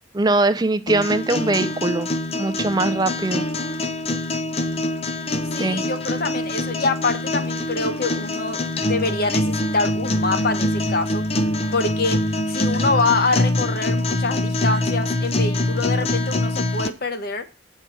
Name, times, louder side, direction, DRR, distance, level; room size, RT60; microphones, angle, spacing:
voice 1, 0.1-2.1 2.4-3.4 5.6-5.9, right 2 dB, 20° right, 0.4 m, -21 dB
sound 1, 0.9-16.9, left 1 dB, 35° left, 0.6 m, -24 dB
voice 2, 5.5-8.6 8.9-11.2 11.7-12.2 12.5-17.5, left 3 dB, 55° left, 1.0 m, -25 dB
8.3 x 4.6 x 6.9 m
head